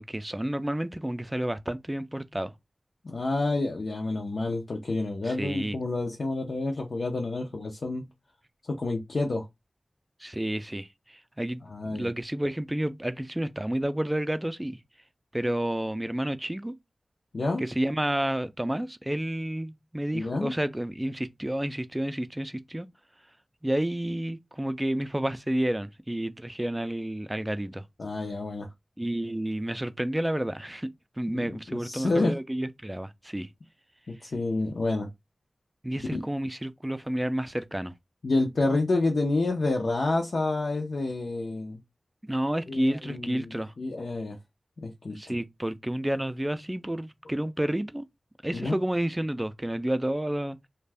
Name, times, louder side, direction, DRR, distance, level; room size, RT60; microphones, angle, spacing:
voice 1, 0.0-2.5 5.2-5.8 10.2-14.8 15.3-16.7 17.6-22.9 23.6-27.8 29.0-30.9 31.2-33.5 35.8-37.9 42.2-43.7 45.1-48.1 48.4-50.6, right 1 dB, 15° right, 0.4 m, -30 dB
voice 2, 3.0-8.0 8.6-9.5 11.7-12.1 17.3-17.6 20.1-20.5 28.0-28.7 31.3-32.3 34.1-35.1 36.1-36.2 38.2-41.8 42.7-44.4 44.8-45.3 48.5-48.8, left 2 dB, 80° left, 0.5 m, -29 dB
2.5 x 2.2 x 3.3 m
wide cardioid pair, 55°, 0 cm